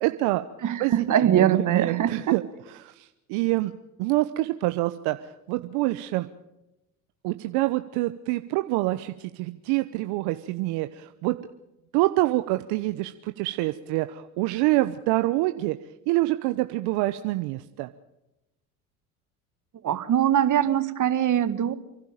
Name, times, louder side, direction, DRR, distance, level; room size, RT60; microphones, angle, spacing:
voice 1, 0.0-0.4 0.8-2.4 2.8-3.7 4.0-6.3 7.2-11.3 11.9-15.8 16.1-17.9, right 18 dB, 65° right, 10 dB, 1.0 m, -26 dB
voice 2, 0.6-2.4 19.8-21.7, right 10 dB, 45° right, 12 dB, 1.8 m, -22 dB
29.5 x 11.5 x 9.1 m, 0.93 s
hypercardioid pair, 75°, 42 cm